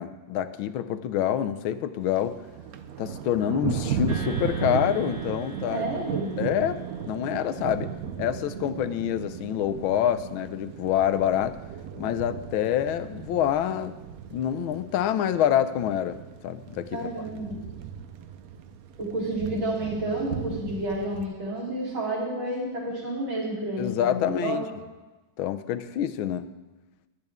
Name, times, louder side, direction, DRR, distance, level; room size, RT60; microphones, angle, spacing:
voice 1, 0.0-2.3 3.0-5.9 6.4-6.8 7.1-7.9 8.2-11.6 12.0-14.0 14.3-17.1 23.8-24.6 25.4-26.5, left 10 dB, 90° left, 11 dB, 1.5 m, -26 dB
Thunder, 2.0-21.3, right 8 dB, 65° right, 0.9 m, -36 dB
sound 1, 4.1-7.6, right 4 dB, 40° right, 2.4 m, -43 dB
voice 2, 5.7-6.3 16.9-17.6 19.0-24.6, right 1 dB, 90° right, -5 dB, 4.4 m, -30 dB
21.0 x 8.0 x 3.6 m, 1.1 s
omnidirectional pair, 2.2 m